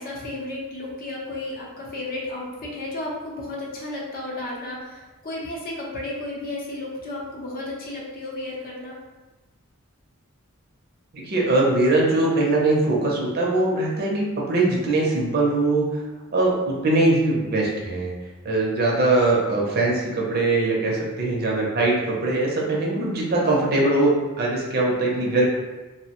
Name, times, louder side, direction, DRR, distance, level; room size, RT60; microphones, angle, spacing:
voice 1, 0.0-8.9, left 2 dB, 45° left, -3 dB, 0.6 m, -33 dB
voice 2, 11.1-15.8 16.3-18.1 18.4-24.1 24.4-25.5, right 2 dB, 45° right, -3 dB, 0.6 m, -21 dB
2.8 x 2.0 x 2.9 m, 1.2 s
head